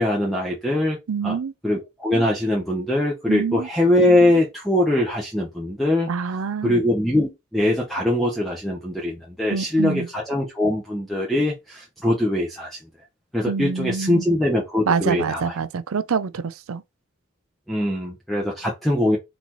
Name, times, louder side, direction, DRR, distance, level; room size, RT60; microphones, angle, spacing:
voice 1, 0.0-1.0 1.2-1.4 1.6-6.1 6.6-12.8 13.3-15.5 17.7-19.2, left 1 dB, ahead, 0.8 m, -22 dB
voice 2, 1.1-1.5 3.3-3.7 6.1-6.8 9.5-10.1 13.5-14.3 14.9-16.8, right 5 dB, 85° right, 0.5 m, -26 dB
4.1 x 4.0 x 3.0 m
head